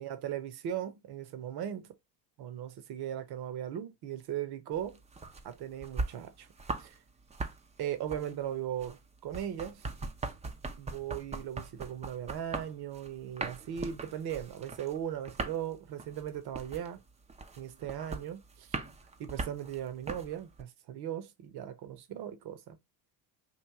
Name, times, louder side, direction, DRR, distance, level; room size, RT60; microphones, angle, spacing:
voice 1, 0.0-1.9 2.4-5.0 5.4-6.5 6.8-7.0 7.8-9.8 10.8-17.0 17.6-18.7 19.2-22.8, right 10 dB, 50° right, 0.9 m, -38 dB
sound 1, 4.7-7.0 7.2-20.6, right 3 dB, 15° right, 0.5 m, -40 dB
3.1 x 2.5 x 3.6 m
supercardioid pair, 75°, 48 cm